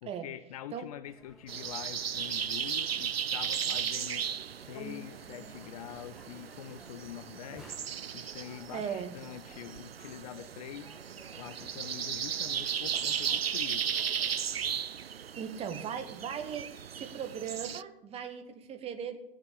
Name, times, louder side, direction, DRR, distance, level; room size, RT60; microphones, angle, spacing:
voice 1, 0.0-4.3 4.6-7.8 8.1-11.0 11.4-13.9, left 12 dB, 40° left, 14 dB, 0.5 m, -45 dB
sound 1, 1.0-14.7, right 1 dB, ahead, 0.8 m, -57 dB
sound 2, 1.5-17.8, right 8 dB, 85° right, 0.4 m, -36 dB
sound 3, 4.7-13.3 14.0-14.1, left 2 dB, 25° left, 4.5 m, -56 dB
voice 2, 8.7-9.2 15.4-19.2, right 7 dB, 20° right, 8 dB, 1.2 m, -38 dB
16.5 x 6.2 x 8.3 m, 0.90 s
figure-of-eight pair, 105°, 29 cm